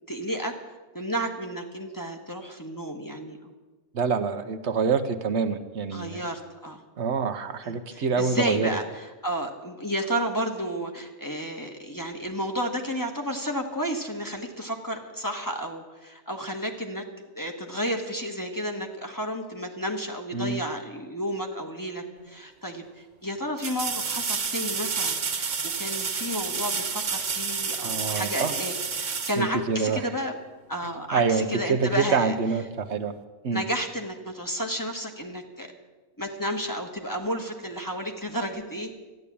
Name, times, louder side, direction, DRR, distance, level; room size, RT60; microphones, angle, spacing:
voice 1, 0.1-0.5 0.9-3.4 5.9-6.8 7.6-17.0 17.3-30.4 30.7-32.3 33.5-35.7 36.2-38.9, equal, 15° left, 3 dB, 1.4 m, -32 dB
voice 2, 3.9-6.2 7.0-8.7 20.3-20.6 27.8-28.5 29.4-30.0 31.1-33.1 33.4-33.6, right 5 dB, 70° right, 8 dB, 1.2 m, -26 dB
sound 1, 22.2-22.3 23.6-30.2 33.1-33.2, right 5 dB, 90° right, 1.6 m, -30 dB
13.5 x 10.5 x 8.5 m, 1.2 s
omnidirectional pair, 1.2 m